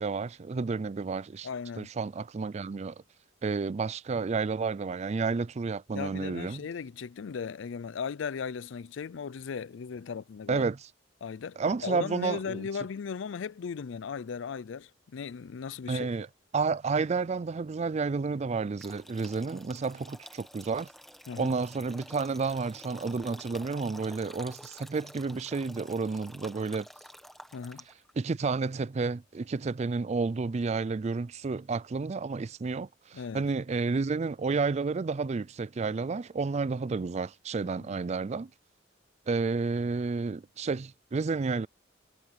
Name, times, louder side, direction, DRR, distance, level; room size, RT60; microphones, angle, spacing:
voice 1, 0.0-1.5 1.8-3.0 3.4-6.6 10.5-10.8 11.6-12.6 15.9-16.3 16.5-20.9 21.4-26.9 28.2-38.5 39.3-41.7, right 4 dB, 35° right, 0.4 m, -31 dB
voice 2, 1.4-1.9 5.9-10.6 11.2-16.1 21.3-21.5 27.5-27.8 33.1-33.5, left 6 dB, 70° left, 0.4 m, -37 dB
sound 1, 18.8-28.1, equal, ahead, 1.4 m, -50 dB
head